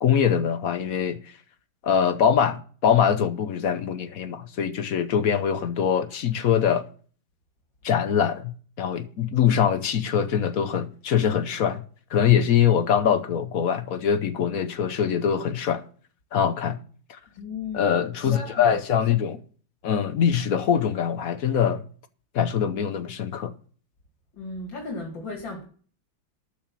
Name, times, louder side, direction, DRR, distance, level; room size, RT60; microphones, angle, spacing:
voice 1, 0.0-1.2 1.8-6.9 7.8-11.8 12.1-15.8 16.3-16.8 17.1-17.2 17.7-19.4 19.8-21.8 22.3-23.5, left 8 dB, 55° left, 1.1 m, -23 dB
voice 2, 17.3-18.6 24.3-25.6, left 3 dB, 75° left, 3.0 m, -35 dB
12.0 x 5.7 x 7.3 m
omnidirectional pair, 2.1 m